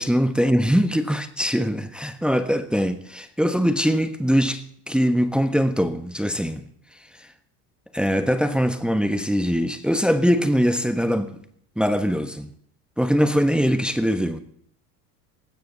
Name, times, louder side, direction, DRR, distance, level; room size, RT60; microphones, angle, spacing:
voice 1, 0.0-6.7 7.2-7.3 7.9-11.4 11.8-12.5 13.0-14.4, equal, ahead, 1.3 m, -22 dB
19.5 x 15.5 x 4.0 m
hypercardioid pair, 80°, 45 cm